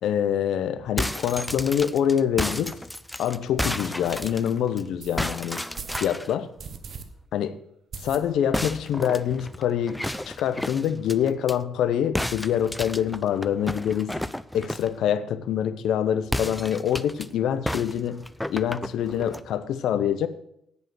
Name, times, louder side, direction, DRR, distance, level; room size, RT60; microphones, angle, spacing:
voice 1, 0.0-2.7 3.2-5.6 6.0-6.5 7.3-7.6 8.0-14.2 14.5-18.2 18.5-20.3, left 9 dB, 80° left, 12 dB, 0.7 m, -25 dB
sound 1, 0.8-4.8 5.2-6.3 8.5-11.6 12.1-15.0 16.2-17.3 17.6-19.5, left 1 dB, 5° left, 0.4 m, -32 dB
sound 2, 2.6-2.7 3.2-3.3 4.0-4.3 5.0-5.3 5.7-6.1 6.6-7.0 7.4-7.5 7.9-8.6 8.9-9.0 9.3-9.4 9.6-10.2, right 6 dB, 55° right, 1.0 m, -40 dB
9.2 x 5.4 x 7.9 m, 0.74 s
cardioid pair, 90°, 0 cm